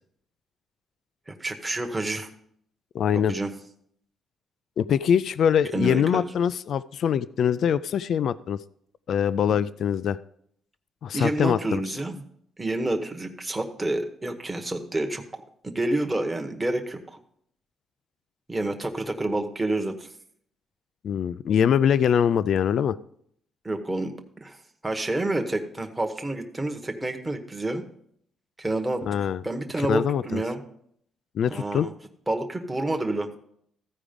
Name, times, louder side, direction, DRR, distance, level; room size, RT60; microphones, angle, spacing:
voice 1, 1.3-2.3 3.1-3.5 5.7-6.2 11.1-12.2 12.6-17.2 18.5-20.1 23.6-24.1 24.4-24.6 24.8-27.8 28.6-29.0 29.4-30.6 31.5-31.9 32.3-33.3, right 2 dB, 15° right, 4 dB, 1.0 m, -28 dB
voice 2, 2.9-3.3 4.8-8.6 9.1-10.2 11.0-11.6 21.0-23.0 29.0-29.4 29.8-30.4 31.3-31.9, left 8 dB, 60° left, 16 dB, 0.3 m, -23 dB
14.5 x 4.9 x 5.1 m, 0.68 s
cardioid pair, 130°, 0 cm